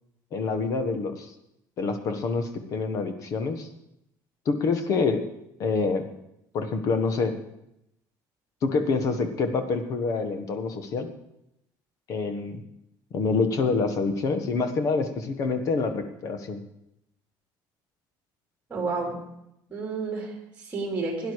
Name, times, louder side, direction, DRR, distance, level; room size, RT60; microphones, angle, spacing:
voice 1, 0.3-1.3 1.8-3.7 4.4-5.2 5.6-6.0 6.5-7.3 8.6-11.1 12.1-12.6 13.1-16.6, left 4 dB, 40° left, 8 dB, 1.4 m, -26 dB
voice 2, 18.7-19.2 19.7-21.3, right 3 dB, 15° right, 0 dB, 3.3 m, -31 dB
16.5 x 10.5 x 4.8 m, 0.82 s
cardioid pair, 175°, 8 cm